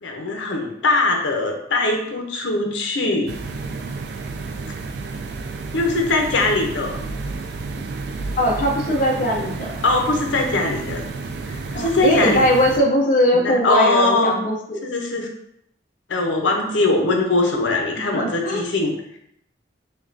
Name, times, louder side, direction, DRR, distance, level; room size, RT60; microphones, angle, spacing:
voice 1, 0.0-3.3 5.7-7.0 9.8-11.0 11.5-12.4 13.3-14.3 14.8-15.3 16.1-18.9, left 2 dB, 85° left, 2 dB, 0.7 m, -21 dB
sound 1, 3.3-12.8, right 3 dB, 65° right, 0.3 m, -31 dB
voice 2, 8.4-9.7 11.7-14.6 18.0-18.6, equal, 45° left, -1 dB, 0.5 m, -20 dB
5.2 x 2.2 x 2.6 m, 0.76 s
head